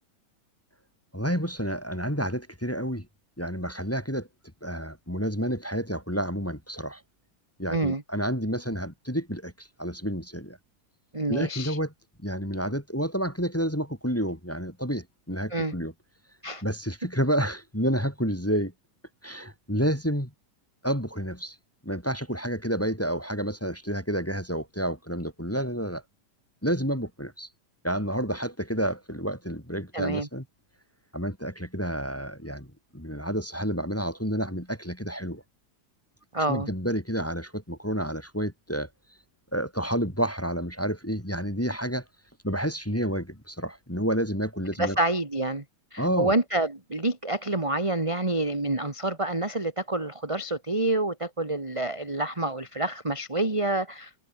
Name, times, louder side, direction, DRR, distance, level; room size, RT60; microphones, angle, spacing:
voice 1, 1.1-3.0 3.4-4.3 4.6-7.0 7.6-10.6 11.3-11.9 12.2-15.9 16.6-18.7 19.2-20.3 20.8-21.5 21.8-26.0 26.6-27.5 27.8-30.4 31.1-32.7 32.9-35.4 36.5-38.9 39.5-42.0 42.4-45.0 46.0-46.3, equal, 5° left, 2.8 m, -29 dB
voice 2, 7.7-8.0 11.1-11.8 15.5-15.7 16.4-16.6 29.9-30.3 36.3-36.7 44.8-45.6 45.9-54.1, right 2 dB, 10° right, 2.0 m, -27 dB
omnidirectional pair, 3.9 m